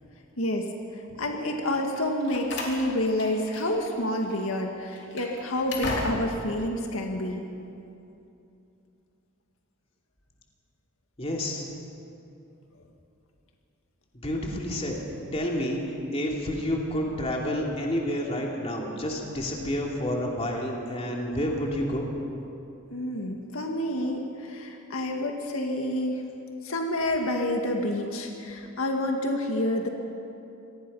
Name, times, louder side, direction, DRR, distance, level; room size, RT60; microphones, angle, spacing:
voice 1, 0.4-0.7 1.2-7.4 22.9-26.3 26.6-29.9, left 1 dB, 75° left, 2 dB, 1.9 m, -28 dB
Slam, 1.9-4.0 4.2-4.4 4.9-6.5, left 2 dB, 55° left, 3.5 m, -35 dB
voice 2, 11.2-11.6 14.1-15.0 15.3-15.8 16.1-22.1, equal, 30° left, -1 dB, 2.8 m, -29 dB
26.5 x 19.0 x 5.6 m, 2.8 s
head